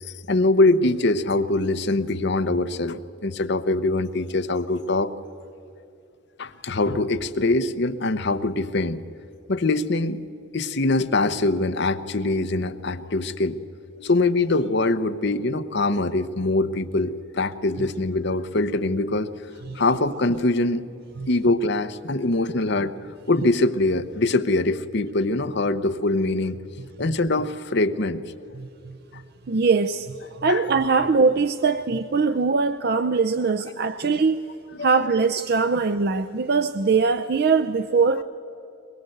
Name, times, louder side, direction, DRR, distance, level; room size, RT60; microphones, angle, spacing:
voice 1, 0.3-5.1 6.4-9.0 9.5-10.2 10.5-13.6 14.0-19.3 19.7-20.8 21.3-22.9 23.3-26.6 27.0-28.3 30.5-30.6 34.7-34.9, left 2 dB, 60° left, 0.9 m, -23 dB
voice 2, 28.5-29.0 29.5-34.5 34.8-38.2, right 4 dB, 50° right, 0.5 m, -22 dB
22.5 x 21.5 x 7.9 m
head